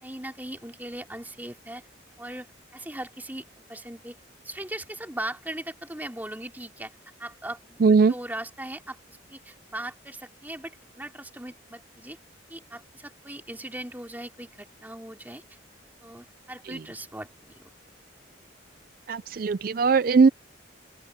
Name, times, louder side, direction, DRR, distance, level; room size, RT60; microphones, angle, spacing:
voice 1, 0.0-1.8 2.2-3.4 3.7-4.2 4.4-6.9 7.2-12.2 12.5-15.4 16.0-17.6, right 1 dB, 10° right, 3.3 m, -39 dB
voice 2, 7.8-8.1 16.6-16.8 19.1-20.3, right 4 dB, 50° right, 0.4 m, -20 dB
open air
head